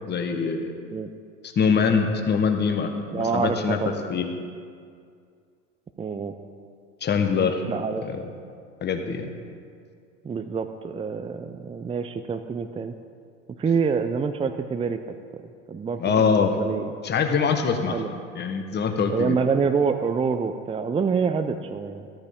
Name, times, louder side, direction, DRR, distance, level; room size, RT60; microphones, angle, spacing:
voice 1, 0.1-0.7 1.5-4.3 7.0-7.6 8.0-8.2 8.8-9.3 16.0-16.6 17.0-18.0 18.3-19.4, left 5 dB, 30° left, 5 dB, 1.4 m, -23 dB
voice 2, 3.1-4.0 6.0-6.3 7.7-8.1 10.2-12.9 13.6-15.0 15.7-16.9 17.9-18.1 19.1-22.1, right 5 dB, 15° right, 8 dB, 0.6 m, -26 dB
13.5 x 13.0 x 3.8 m, 2.2 s
hypercardioid pair, 80°, 37 cm